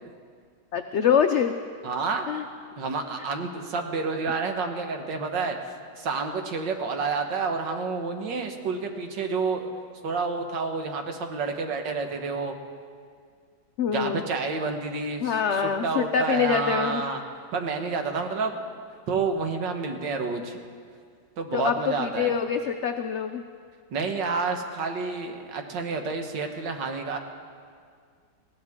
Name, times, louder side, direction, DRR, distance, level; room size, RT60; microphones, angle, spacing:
voice 1, 0.7-1.5 2.3-2.4 13.8-14.2 15.2-17.0 21.5-23.4, left 7 dB, 85° left, 6 dB, 0.6 m, -25 dB
voice 2, 1.8-2.3 2.8-9.7 10.0-12.5 13.9-17.2 17.5-18.6 19.1-20.6 21.4-22.3 23.9-27.2, right 4 dB, 90° right, 5 dB, 1.9 m, -29 dB
20.0 x 16.5 x 3.6 m, 2.1 s
omnidirectional pair, 1.9 m